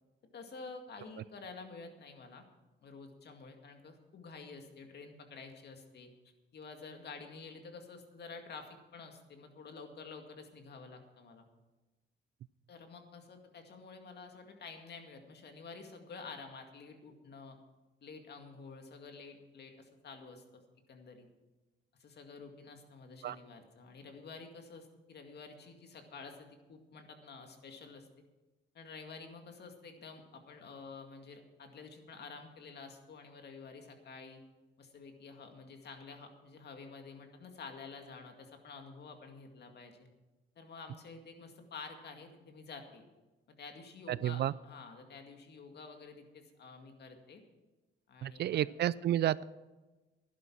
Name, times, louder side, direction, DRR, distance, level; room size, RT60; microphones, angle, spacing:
voice 1, 0.3-2.4 2.8-6.1 6.5-11.5 12.7-17.6 18.0-20.6 20.9-21.3 22.0-28.1 28.7-34.4 34.8-40.1 40.6-43.0 43.6-47.4 48.1-48.7, left 4 dB, 55° left, 5 dB, 2.1 m, -50 dB
voice 2, 44.1-44.5 48.2-49.4, right 12 dB, 60° right, 20 dB, 0.4 m, -31 dB
11.5 x 11.5 x 6.1 m, 1.1 s
cardioid pair, 90°, 20 cm